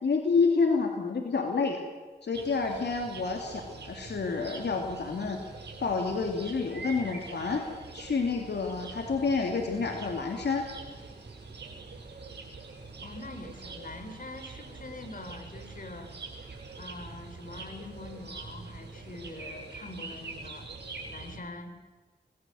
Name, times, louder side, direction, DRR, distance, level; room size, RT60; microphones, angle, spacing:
voice 1, 0.0-1.8 2.2-5.4 5.8-7.6 7.9-10.6, left 4 dB, 75° left, 3 dB, 2.8 m, -29 dB
sound 1, 2.3-21.4, right 3 dB, 80° right, 7.4 m, -44 dB
voice 2, 13.0-16.1 16.8-20.7 21.1-21.7, left 2 dB, 55° left, 7 dB, 4.2 m, -44 dB
25.5 x 20.5 x 7.9 m, 1.3 s
wide cardioid pair, 80°, 17 cm